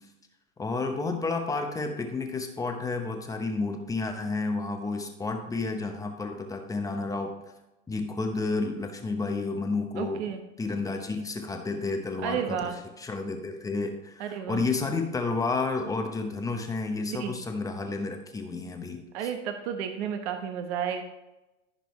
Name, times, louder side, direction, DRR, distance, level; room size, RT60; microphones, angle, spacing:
voice 1, 0.6-7.3 7.9-10.2 10.6-19.3, left 3 dB, 10° left, 4 dB, 0.9 m, -31 dB
voice 2, 10.0-10.4 12.2-12.8 14.2-14.6 17.1-17.4 19.1-21.0, right 8 dB, 55° right, 6 dB, 1.1 m, -32 dB
15.0 x 5.3 x 3.2 m, 1.0 s
hypercardioid pair, 140°, 40 cm